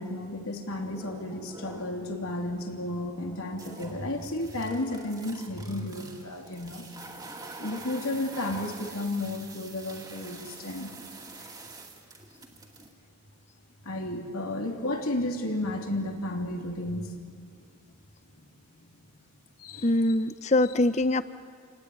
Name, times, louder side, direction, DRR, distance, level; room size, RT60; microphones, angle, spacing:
voice 1, 0.0-6.8 7.6-10.9 13.8-17.1 19.6-19.9, left 1 dB, 85° left, 2 dB, 3.2 m, -33 dB
sound 1, 0.8-2.2 2.6-12.9, right 3 dB, 20° right, 2.3 m, -46 dB
voice 2, 19.8-21.2, left 2 dB, 30° left, 13 dB, 0.7 m, -23 dB
29.0 x 18.0 x 9.6 m, 2.2 s
head